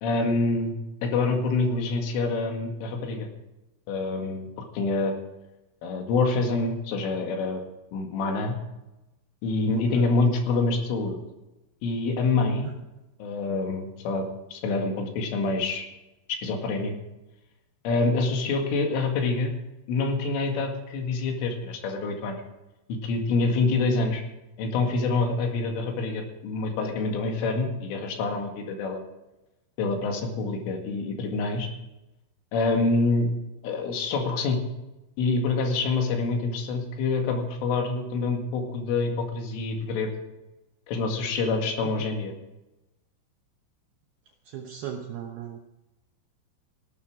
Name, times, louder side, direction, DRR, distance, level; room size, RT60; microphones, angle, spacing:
voice 1, 0.0-0.8 1.0-3.3 3.9-5.1 5.8-7.6 7.9-8.5 9.4-11.2 11.8-12.7 13.2-14.2 14.5-15.9 16.3-16.9 17.8-19.5 19.9-22.4 22.9-24.2 24.6-29.0 29.8-31.7 32.5-33.3 33.6-34.6 35.2-40.1 40.9-42.3, left 3 dB, 75° left, 3 dB, 4.5 m, -26 dB
voice 2, 9.7-10.1 12.6-12.8 41.8-42.1 44.5-45.6, right 9 dB, 75° right, 3 dB, 2.3 m, -38 dB
17.0 x 12.5 x 4.9 m, 0.99 s
omnidirectional pair, 5.8 m